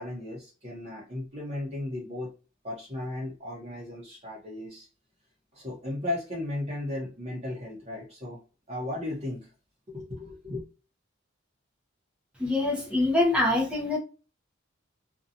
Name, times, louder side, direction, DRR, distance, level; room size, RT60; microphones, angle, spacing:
voice 1, 0.0-2.3 2.6-4.9 5.5-8.4 8.7-9.5 9.9-10.6, left 1 dB, 35° right, 0.8 m, -35 dB
voice 2, 12.4-14.0, left 2 dB, 5° right, 0.6 m, -24 dB
2.6 x 2.2 x 2.6 m
head